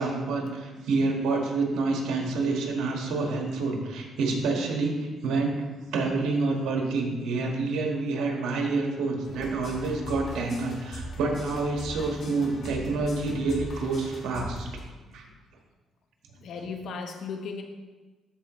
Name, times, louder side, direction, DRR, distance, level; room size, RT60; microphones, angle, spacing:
voice 1, 0.0-5.5 5.9-14.7 15.1-15.2, right 3 dB, 85° right, 1 dB, 1.5 m, -28 dB
sound 1, 9.2-14.8, left 1 dB, 55° left, 2.0 m, -40 dB
voice 2, 16.3-17.6, left 5 dB, 75° left, 4 dB, 1.0 m, -36 dB
13.5 x 4.7 x 3.1 m, 1.3 s
cardioid pair, 90°, 0 cm